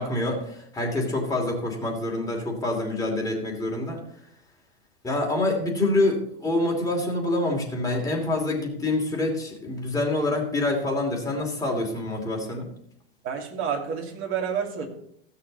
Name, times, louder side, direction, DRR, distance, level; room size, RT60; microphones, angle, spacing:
voice 1, 0.0-4.0 5.0-12.7, left 2 dB, 10° left, -1 dB, 2.8 m, -26 dB
voice 2, 13.2-14.9, right 7 dB, 40° right, 2 dB, 2.6 m, -29 dB
16.0 x 6.8 x 4.1 m, 0.68 s
hypercardioid pair, 125°, 32 cm